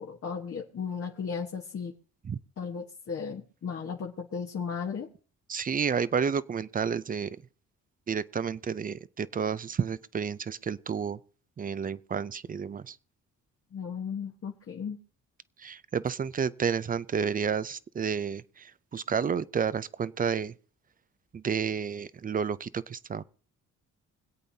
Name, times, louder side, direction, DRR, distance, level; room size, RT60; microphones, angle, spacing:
voice 1, 0.0-1.9 2.6-5.1 13.7-15.0, left 6 dB, 50° left, 1.3 m, -35 dB
voice 2, 5.5-7.4 8.1-11.2 11.6-13.0 15.6-20.5 21.3-23.2, right 6 dB, 30° right, 0.5 m, -31 dB
25.0 x 8.4 x 2.8 m
cardioid pair, 90°, 30 cm